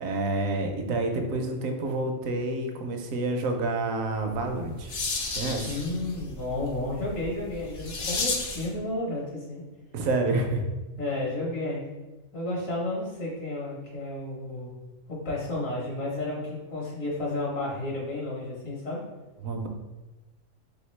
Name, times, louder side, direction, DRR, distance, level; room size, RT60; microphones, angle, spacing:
voice 1, 0.0-4.9 5.3-5.8 9.9-10.6 19.4-19.7, right 2 dB, 75° right, 4 dB, 1.0 m, -28 dB
sound 1, 4.3-8.8, left 3 dB, 55° left, 0.5 m, -33 dB
voice 2, 5.6-9.6 11.0-11.9 12.3-14.7 15.1-19.0, left 2 dB, 75° left, -4 dB, 1.5 m, -32 dB
3.6 x 3.5 x 3.1 m, 1.1 s
omnidirectional pair, 1.4 m